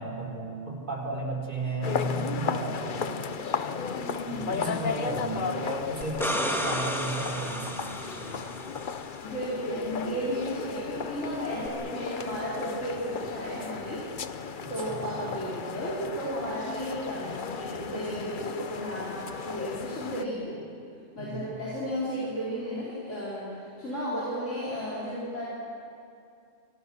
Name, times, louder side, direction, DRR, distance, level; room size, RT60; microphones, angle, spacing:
voice 1, 0.0-3.1 4.2-8.5 14.6-15.0 21.2-21.5, right 2 dB, 40° right, 0 dB, 4.6 m, -34 dB
sound 1, 1.8-20.2, left 6 dB, 45° left, 0.9 m, -35 dB
voice 2, 3.9-4.5 9.2-14.1 14.7-20.6 21.1-25.4, equal, 70° left, -8 dB, 5.2 m, -34 dB
sound 2, 6.0-8.8 11.7-11.8, equal, ahead, 2.2 m, -32 dB
28.0 x 25.0 x 6.4 m, 2.5 s
omnidirectional pair, 1.3 m